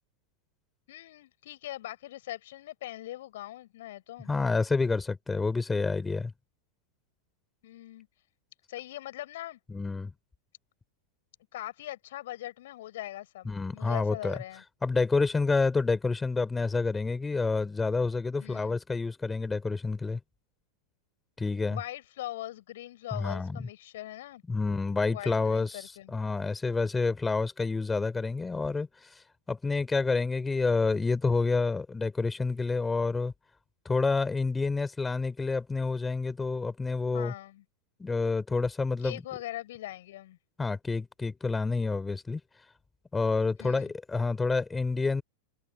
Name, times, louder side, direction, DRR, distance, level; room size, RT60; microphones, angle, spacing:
voice 1, 0.9-4.3 7.6-8.1 8.7-9.6 11.5-14.6 18.4-18.8 21.7-24.4 25.1-26.1 37.1-37.6 39.0-40.4 43.6-43.9, left 14 dB, 55° left, 6.3 m, -41 dB
voice 2, 4.3-6.3 9.7-10.1 13.4-14.4 14.8-20.2 21.4-21.8 23.1-23.6 24.5-33.3 33.8-37.3 38.0-39.2 40.6-42.4 43.1-45.2, left 4 dB, 10° left, 4.3 m, -28 dB
figure-of-eight pair, 90°, 0 cm